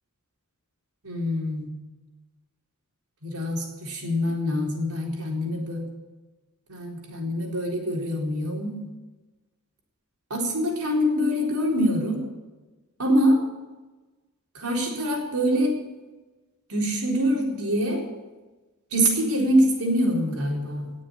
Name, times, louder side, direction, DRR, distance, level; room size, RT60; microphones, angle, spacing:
voice 1, 1.0-1.7 3.2-5.8 6.7-8.8 10.3-12.2 13.0-13.4 14.5-15.7 16.7-18.0 18.9-20.9, equal, 85° right, -1 dB, 4.2 m, -24 dB
19.0 x 7.4 x 8.8 m, 1.2 s
head